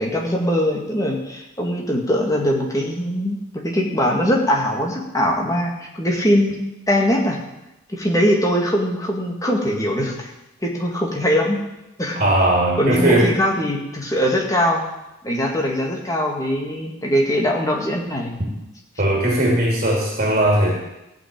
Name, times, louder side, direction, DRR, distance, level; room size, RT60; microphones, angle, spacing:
voice 1, 0.0-6.6 6.9-7.4 7.9-10.3 10.6-11.6 12.0-12.2 12.8-14.8 15.2-18.3, equal, 15° left, 0 dB, 2.0 m, -21 dB
voice 2, 12.1-13.3 19.0-20.7, right 1 dB, 35° right, -1 dB, 2.7 m, -18 dB
16.0 x 6.0 x 8.7 m, 0.93 s
head